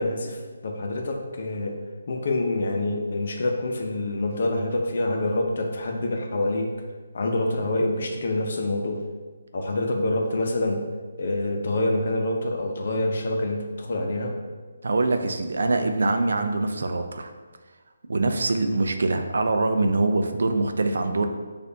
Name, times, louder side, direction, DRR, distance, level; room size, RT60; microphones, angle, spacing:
voice 1, 0.0-1.7 2.1-6.7 7.1-9.0 9.5-10.8 11.2-14.3, left 2 dB, 55° left, 2 dB, 0.7 m, -26 dB
voice 2, 14.8-17.3 18.1-21.3, right 2 dB, 70° right, 6 dB, 0.4 m, -24 dB
6.5 x 2.5 x 2.7 m, 1.4 s
hypercardioid pair, 160°, 0 cm